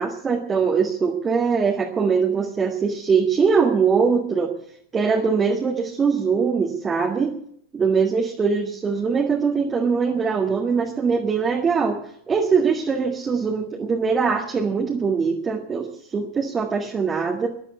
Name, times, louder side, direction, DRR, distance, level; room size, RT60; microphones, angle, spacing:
voice 1, 0.0-4.5 4.9-7.4 7.7-12.0 12.3-15.9 16.1-17.5, right 5 dB, 20° right, 1 dB, 1.9 m, -22 dB
13.5 x 11.0 x 8.2 m, 0.69 s
figure-of-eight pair, 90°, 0 cm